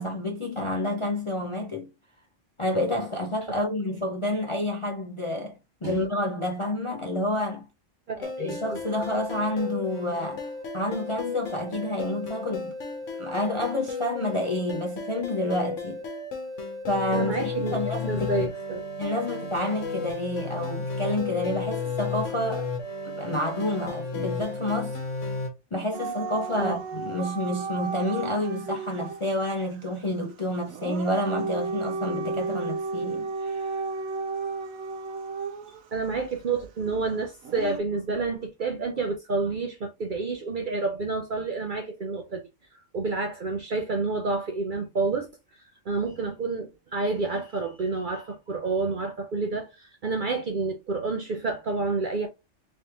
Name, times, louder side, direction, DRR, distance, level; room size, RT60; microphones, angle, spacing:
voice 1, 0.0-1.9 2.6-7.7 8.2-12.7 13.2-16.0 16.9-18.5 19.0-22.7 23.0-25.0 25.7-33.7, left 1 dB, 35° left, 0.5 m, -29 dB
voice 2, 8.1-8.6 17.1-17.8 18.1-18.8 26.6-26.8 35.9-42.4 42.9-45.3 45.9-52.3, right 3 dB, 50° right, 0.6 m, -29 dB
sound 1, 8.2-25.5, left 4 dB, 70° left, 1.2 m, -33 dB
Dog / Siren, 25.9-29.2 30.7-35.8 37.4-37.8, right 4 dB, 80° right, 1.0 m, -33 dB
3.4 x 3.2 x 2.8 m
omnidirectional pair, 1.4 m